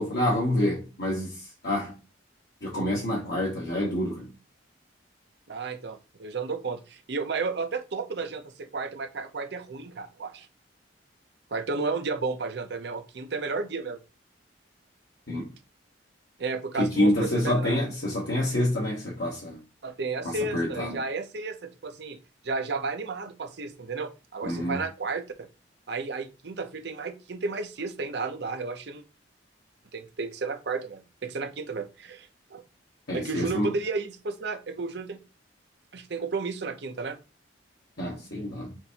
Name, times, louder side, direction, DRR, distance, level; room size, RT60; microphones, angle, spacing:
voice 1, 0.0-2.0 2.6-4.3 15.3-15.5 16.8-19.6 20.2-21.0 24.4-24.8 33.1-33.7 38.0-38.8, left 1 dB, 55° left, 1.2 m, -27 dB
voice 2, 5.5-10.5 11.5-14.0 16.4-17.8 19.8-22.2 22.4-25.5 25.9-29.0 29.9-32.6 33.1-35.2 35.9-37.2, right 4 dB, 55° right, 0.6 m, -33 dB
5.9 x 2.6 x 2.8 m
head